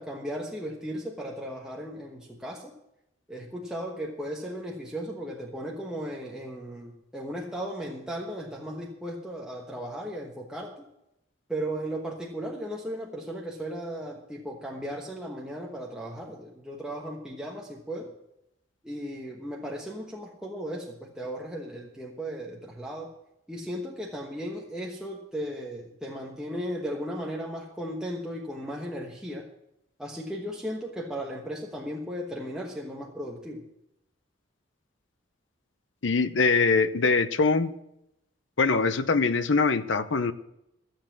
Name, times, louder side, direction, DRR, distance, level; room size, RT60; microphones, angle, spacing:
voice 1, 0.0-2.7 3.3-10.8 11.5-18.1 18.8-23.1 23.5-29.5 30.0-33.6, equal, 5° right, -3 dB, 1.2 m, -36 dB
voice 2, 36.0-37.7 38.6-40.3, left 4 dB, 70° left, 12 dB, 0.7 m, -23 dB
14.0 x 7.4 x 7.4 m, 0.83 s
head